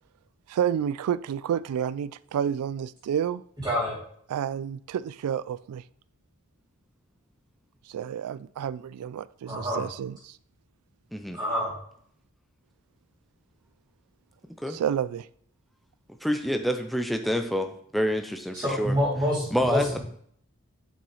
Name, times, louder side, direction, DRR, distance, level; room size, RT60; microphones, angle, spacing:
voice 1, 0.5-3.4 4.3-5.8 7.9-10.4 14.7-15.3, right 9 dB, 90° right, 0.3 m, -30 dB
voice 2, 3.6-3.9 9.5-9.8 11.3-11.7 18.6-20.0, equal, 20° right, 2.9 m, -26 dB
voice 3, 16.2-18.9 19.5-20.0, equal, ahead, 0.4 m, -27 dB
7.1 x 6.1 x 3.1 m
head